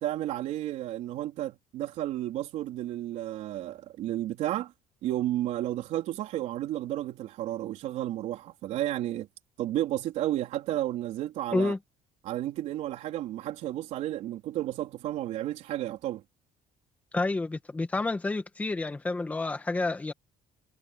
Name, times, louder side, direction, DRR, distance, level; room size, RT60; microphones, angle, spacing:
voice 1, 0.0-4.7 5.0-9.3 9.6-11.7 12.2-16.2, right 13 dB, 60° right, 4.0 m, -32 dB
voice 2, 17.1-20.1, left 3 dB, 10° left, 1.7 m, -29 dB
cardioid pair, 175°, 13 cm